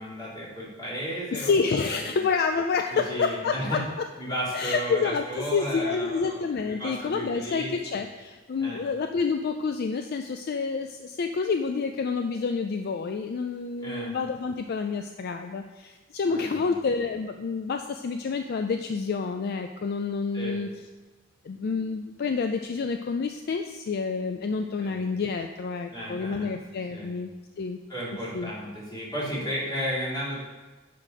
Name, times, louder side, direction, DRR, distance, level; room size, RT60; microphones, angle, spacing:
voice 1, 0.0-2.2 2.9-3.8 4.2-7.7 8.6-8.8 13.8-14.1 16.3-16.7 20.3-20.6 24.8-25.0 25.9-26.5 26.9-27.1 27.9-30.4, equal, 20° left, -6 dB, 2.3 m, -34 dB
voice 2, 1.3-3.8 4.5-20.7 21.4-27.3 27.6-27.8 28.3-28.5, left 5 dB, 50° left, 6 dB, 0.4 m, -28 dB
6.4 x 5.8 x 5.0 m, 1.2 s
head